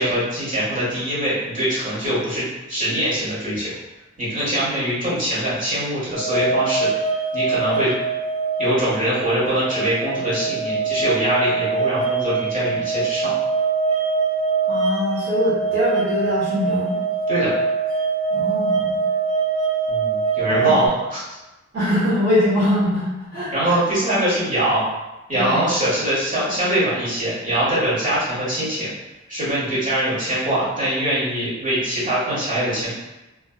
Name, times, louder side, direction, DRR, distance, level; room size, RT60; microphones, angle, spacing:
voice 1, 0.0-3.7 4.2-6.9 7.3-7.9 8.6-13.3 17.3-17.5 19.9-21.2 23.5-24.8 25.3-28.9 29.3-32.9, right 1 dB, 25° right, -10 dB, 1.4 m, -23 dB
sound 1, 6.1-20.9, right 4 dB, 75° right, 0.6 m, -23 dB
voice 2, 14.7-17.0 18.3-19.0 20.5-20.8 21.7-23.8 25.3-25.6, left 1 dB, 40° right, -12 dB, 0.9 m, -22 dB
2.5 x 2.2 x 2.2 m, 1.0 s
wide cardioid pair, 70°, 29 cm